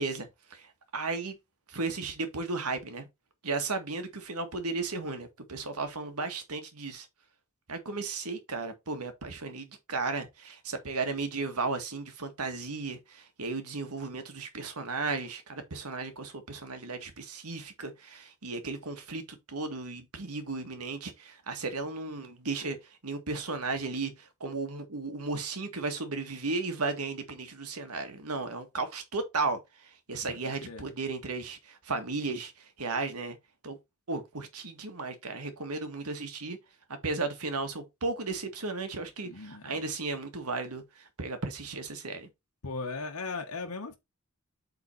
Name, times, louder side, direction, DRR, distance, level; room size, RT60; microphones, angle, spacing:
voice 1, 0.0-1.4 1.7-3.1 3.4-7.1 7.7-22.8 23.0-33.4 33.6-33.8 34.1-36.6 37.0-42.3, right 3 dB, 80° right, 1.8 m, -35 dB
voice 2, 30.3-30.9 39.2-39.7 42.6-44.0, left 3 dB, 75° left, 1.3 m, -38 dB
8.2 x 3.9 x 4.2 m
head